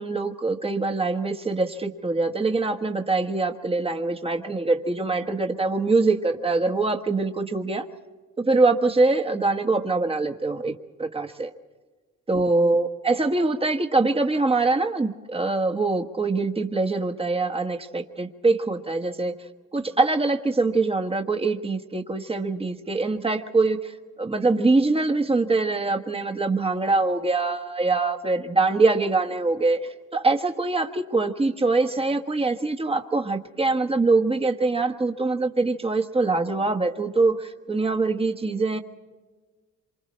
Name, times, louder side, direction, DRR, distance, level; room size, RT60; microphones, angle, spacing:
voice 1, 0.0-7.9 8.4-11.5 12.3-19.3 19.7-38.8, right 3 dB, 20° right, 4 dB, 1.4 m, -23 dB
27.0 x 25.0 x 4.3 m, 1.4 s
cardioid pair, 90°, 30 cm